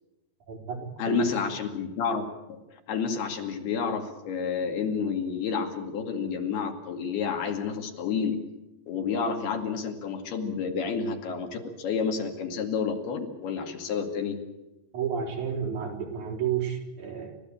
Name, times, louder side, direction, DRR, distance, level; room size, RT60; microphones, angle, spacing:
voice 1, 0.5-0.8 1.1-1.3 14.9-17.3, right 7 dB, 50° right, 0 dB, 5.4 m, -31 dB
voice 2, 1.0-2.6 2.9-8.4 8.9-14.4, left 6 dB, 85° left, 5 dB, 4.4 m, -30 dB
29.5 x 15.0 x 8.8 m, 1.0 s
omnidirectional pair, 4.4 m